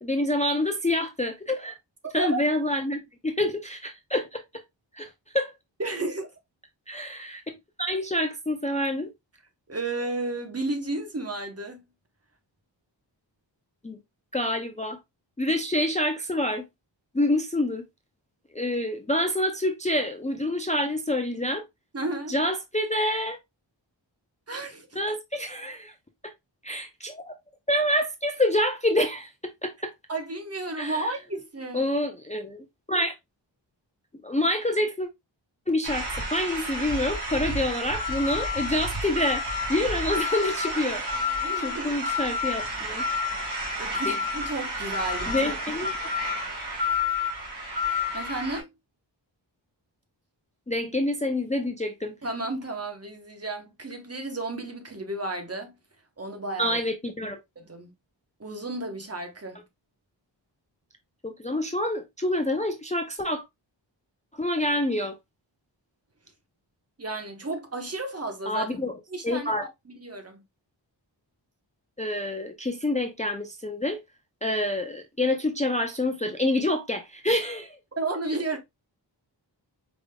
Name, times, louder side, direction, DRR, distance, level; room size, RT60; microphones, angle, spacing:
voice 1, 0.0-1.8 2.1-4.4 4.9-5.5 6.9-7.4 7.8-9.1 13.8-14.0 14.3-15.0 15.4-16.6 17.1-17.9 18.5-21.6 22.3-23.4 25.0-25.9 26.6-27.3 27.7-29.9 30.8-31.2 31.7-33.1 34.2-35.1 35.7-41.2 41.6-43.0 44.1-44.2 45.3-46.1 50.7-52.1 56.6-57.4 61.2-63.4 64.3-65.2 68.5-68.9 69.2-69.6 72.0-74.0 74.4-77.8, left 1 dB, 15° left, 0.5 m, -27 dB
voice 2, 2.0-2.4 5.8-6.3 9.7-11.8 21.9-22.3 24.5-24.9 30.1-31.8 40.7-42.0 43.8-45.6 48.1-48.7 52.2-55.7 56.2-56.8 57.6-57.9 58.4-59.6 67.0-68.7 69.1-69.5 69.9-70.4 78.0-78.6, right 2 dB, 30° right, 1.0 m, -33 dB
sound 1, 35.8-48.6, left 2 dB, 60° right, 2.1 m, -30 dB
5.0 x 3.4 x 2.2 m
wide cardioid pair, 90°, 46 cm